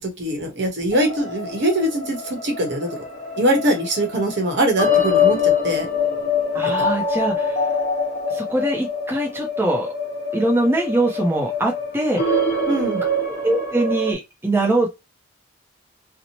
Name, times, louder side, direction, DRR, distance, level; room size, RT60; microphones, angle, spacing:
voice 1, 0.2-2.9 3.4-5.4 5.6-5.9 6.6-6.9 12.7-13.0, right 1 dB, 55° right, 3 dB, 0.9 m, -22 dB
sound 1, 0.9-14.1, left 4 dB, 40° left, 1.0 m, -24 dB
voice 2, 6.5-7.7 8.3-9.9 10.3-12.4 12.9-13.0 13.4-15.0, right 1 dB, 10° right, -1 dB, 0.5 m, -22 dB
2.7 x 2.0 x 2.9 m, 0.23 s
head